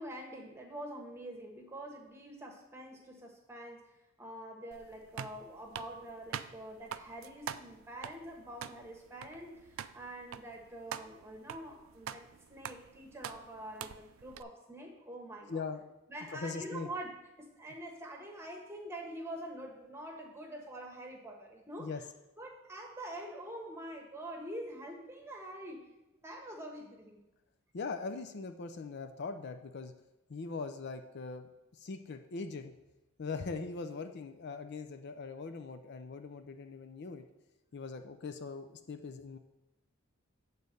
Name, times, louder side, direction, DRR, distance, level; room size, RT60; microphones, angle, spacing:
voice 1, 0.0-3.8 4.2-15.6 16.1-17.1 17.4-22.0 22.4-25.9 26.2-27.2, right 1 dB, 15° right, 1 dB, 1.3 m, -45 dB
sound 1, 4.7-14.4, right 8 dB, 70° right, 0.4 m, -45 dB
voice 2, 15.5-16.0 16.3-16.9 21.8-22.0 27.7-29.9 30.3-32.7 33.2-37.2 37.7-39.4, left 4 dB, 55° left, 7 dB, 0.5 m, -41 dB
8.4 x 4.1 x 6.6 m, 0.98 s
head